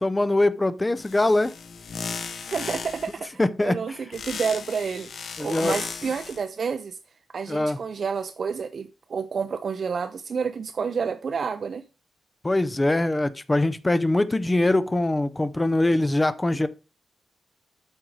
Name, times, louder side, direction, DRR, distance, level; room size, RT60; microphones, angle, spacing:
voice 1, 0.0-1.5 3.4-4.0 5.4-5.8 7.5-7.8 12.4-16.7, left 2 dB, 15° left, 0.4 m, -23 dB
sound 1, 1.0-3.2 4.1-6.4, left 5 dB, 60° left, 0.9 m, -35 dB
voice 2, 2.5-5.1 5.4-7.0 7.3-11.8, right 6 dB, 45° right, 0.5 m, -29 dB
8.6 x 5.2 x 4.7 m
wide cardioid pair, 170°, 0 cm